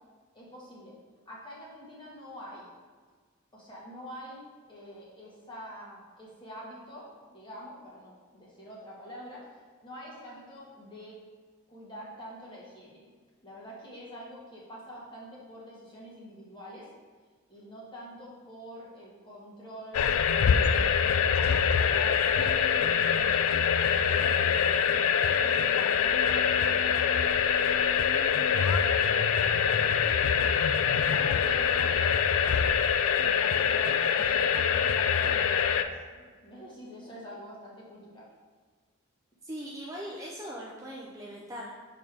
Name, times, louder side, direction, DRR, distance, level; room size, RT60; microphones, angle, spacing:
voice 1, 0.3-0.9 1.2-2.7 3.5-11.2 11.7-13.1 13.4-16.9 17.5-21.4 21.8-25.0 25.4-26.9 27.4-28.2 28.6-30.1 30.9-32.6 33.2-38.3, equal, 20° left, -6 dB, 1.6 m, -46 dB
sound 1, 19.9-35.8, left 7 dB, 75° left, 0.4 m, -24 dB
voice 2, 39.4-41.7, equal, 15° right, -4 dB, 0.6 m, -40 dB
6.6 x 5.0 x 3.5 m, 1.5 s
head